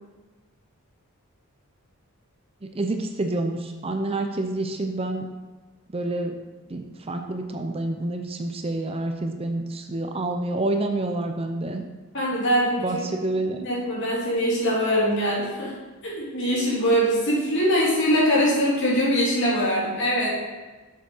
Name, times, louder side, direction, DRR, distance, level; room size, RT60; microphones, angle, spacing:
voice 1, 2.6-5.3 5.9-6.4 6.7-11.9 12.8-13.6, right 2 dB, 25° right, 5 dB, 0.6 m, -28 dB
voice 2, 12.1-13.0 13.6-15.8 16.0-20.3, equal, 55° left, -5 dB, 3.1 m, -22 dB
7.5 x 6.9 x 5.5 m, 1.3 s
head